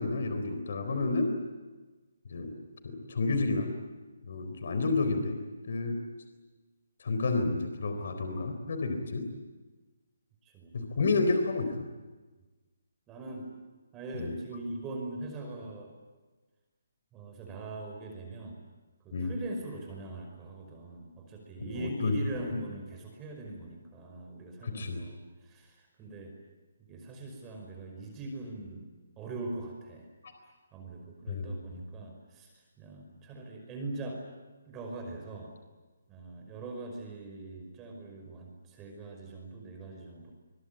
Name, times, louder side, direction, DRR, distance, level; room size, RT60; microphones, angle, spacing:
voice 1, 0.0-1.4 2.3-2.5 2.8-3.7 4.3-5.4 5.7-6.0 7.0-9.3 10.7-11.8 14.2-14.3 19.1-19.3 21.6-22.1 24.6-25.0 30.2-30.3 31.3-31.6, left 3 dB, 60° left, 7 dB, 4.0 m, -30 dB
voice 2, 10.4-10.7 13.1-13.5 13.9-15.9 17.1-18.6 19.0-26.3 26.9-28.9 29.2-30.1 30.7-34.2 34.7-35.5 36.1-40.3, right 2 dB, 15° right, 2 dB, 5.4 m, -41 dB
26.5 x 23.0 x 8.9 m, 1.3 s
figure-of-eight pair, 150°, 0 cm